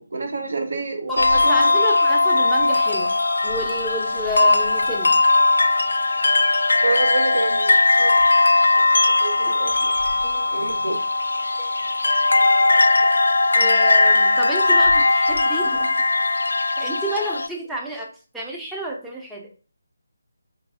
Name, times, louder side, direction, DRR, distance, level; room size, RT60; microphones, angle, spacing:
voice 1, 0.0-1.8 6.8-8.2 8.7-8.9 9.2-9.9 10.5-11.1, right 3 dB, 60° right, 3 dB, 0.8 m, -28 dB
sound 1, 1.2-17.5, left 2 dB, 70° left, 0.3 m, -19 dB
voice 2, 1.3-3.1 3.4-5.2 10.2-10.4 13.5-15.9 16.8-18.1 18.3-19.5, right 1 dB, ahead, -3 dB, 0.6 m, -30 dB
3.8 x 3.2 x 2.5 m, 0.37 s
figure-of-eight pair, 150°, 0 cm